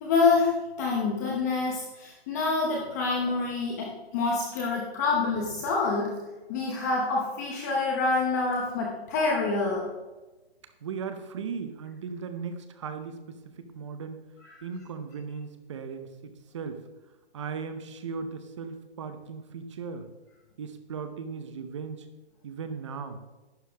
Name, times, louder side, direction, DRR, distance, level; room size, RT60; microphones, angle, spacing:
voice 1, 0.0-6.1 6.5-9.9, left 4 dB, 15° left, -1 dB, 0.8 m, -27 dB
voice 2, 10.8-14.2 14.6-16.8 17.3-20.1 20.6-22.1 22.4-23.2, right 5 dB, 30° right, 8 dB, 0.8 m, -37 dB
11.5 x 8.8 x 3.4 m, 1.1 s
hypercardioid pair, 165°, 32 cm